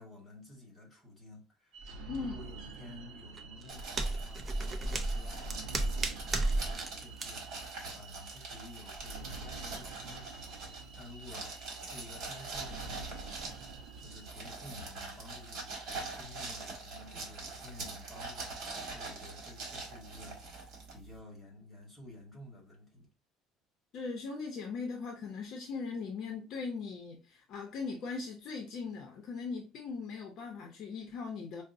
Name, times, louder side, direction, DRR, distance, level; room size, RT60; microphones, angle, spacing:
voice 1, 0.0-1.9 2.2-6.1 6.5-13.6 14.0-23.1, left 2 dB, 5° left, 1.5 m, -52 dB
sound 1, 1.7-14.4, right 3 dB, 75° right, 0.5 m, -48 dB
voice 2, 2.1-2.4 23.9-31.6, left 4 dB, 45° left, 0.6 m, -39 dB
sound 2, 3.4-6.9 7.2-7.3, right 2 dB, 20° right, 0.4 m, -33 dB
sound 3, 3.7-21.2, right 3 dB, 50° right, 1.3 m, -44 dB
4.9 x 2.0 x 2.6 m
cardioid pair, 175°, 0 cm